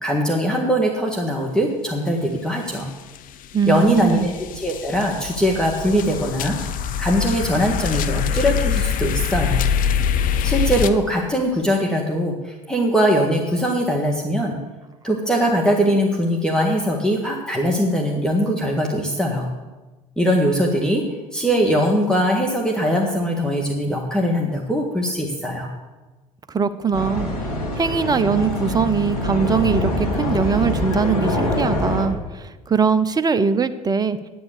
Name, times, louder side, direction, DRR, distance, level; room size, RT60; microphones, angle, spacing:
voice 1, 0.0-2.9 3.6-4.3 4.6-6.6 7.0-9.6 10.4-14.6 15.0-19.5 20.2-21.0 21.3-25.7, equal, 5° left, -1 dB, 1.8 m, -21 dB
sound 1, 2.7-2.8 3.2-10.9, left 8 dB, 45° left, 0.8 m, -24 dB
voice 2, 3.5-4.3 26.5-27.3 27.7-34.2, right 5 dB, 20° right, 13 dB, 0.7 m, -21 dB
sound 2, 26.9-32.1, left 1 dB, 80° left, 2.1 m, -24 dB
9.4 x 9.3 x 6.8 m, 1.2 s
hypercardioid pair, 65°, 19 cm